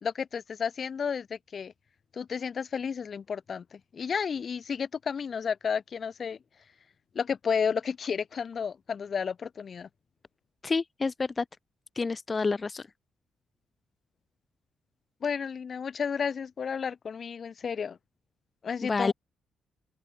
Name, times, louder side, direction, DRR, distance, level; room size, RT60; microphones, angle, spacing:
voice 1, 0.0-1.7 2.1-6.4 7.1-9.9 15.2-18.0 18.6-19.1, left 6 dB, 45° left, 2.7 m, -32 dB
voice 2, 10.6-11.4 12.0-12.9 18.8-19.1, left 4 dB, 25° left, 0.3 m, -28 dB
open air
cardioid pair, 120°, 0 cm